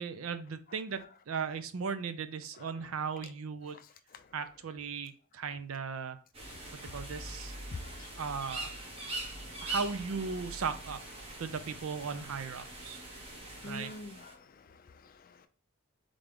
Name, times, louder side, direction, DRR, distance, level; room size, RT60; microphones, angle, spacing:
voice 1, 0.0-3.8 4.3-6.2 6.9-7.5 8.2-8.7 9.6-11.0 11.4-13.0 13.6-13.9, right 5 dB, 75° right, 0.5 m, -37 dB
sound 1, 6.3-14.3, right 2 dB, 25° right, 1.0 m, -43 dB
voice 2, 13.5-15.5, left 2 dB, 40° left, 0.4 m, -48 dB
3.8 x 3.4 x 3.4 m
head